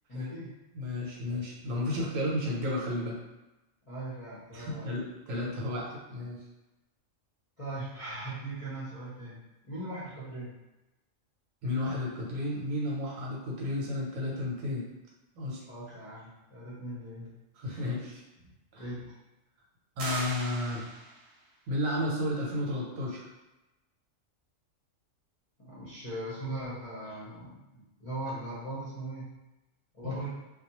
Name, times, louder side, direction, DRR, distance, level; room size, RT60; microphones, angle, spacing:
voice 1, 0.1-0.5 3.9-4.9 7.6-10.5 15.7-17.3 18.7-19.1 25.6-29.3 29.9-30.3, right 2 dB, 35° left, -10 dB, 0.7 m, -39 dB
voice 2, 0.7-3.2 4.5-6.4 11.6-14.8 15.3-15.6 17.6-18.2 18.7-18.9 20.0-20.8 21.7-23.3 30.0-30.3, left 1 dB, 80° right, -4 dB, 1.1 m, -32 dB
sound 1, 20.0-21.4, right 1 dB, 50° right, 0.5 m, -39 dB
2.3 x 2.2 x 2.9 m, 1.0 s
omnidirectional pair, 1.4 m